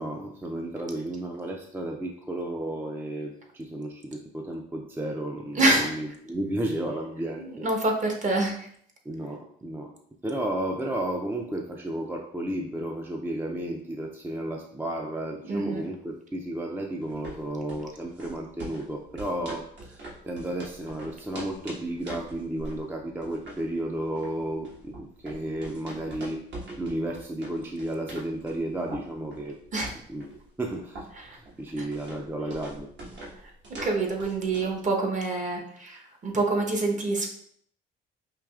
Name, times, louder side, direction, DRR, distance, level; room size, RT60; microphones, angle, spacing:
voice 1, 0.0-7.7 9.1-9.9 10.2-26.4 26.8-29.6 30.1-31.1 31.3-32.9, right 1 dB, 10° right, 1 dB, 0.4 m, -33 dB
voice 2, 5.5-6.0 7.4-8.7 15.5-15.8 29.7-29.9 31.2-31.4 31.8-31.9 33.8-37.3, right 2 dB, 40° right, 1 dB, 0.9 m, -26 dB
sound 1, 17.0-34.8, right 1 dB, 65° right, 1.3 m, -44 dB
4.6 x 2.7 x 2.3 m, 0.64 s
cardioid pair, 90°, 20 cm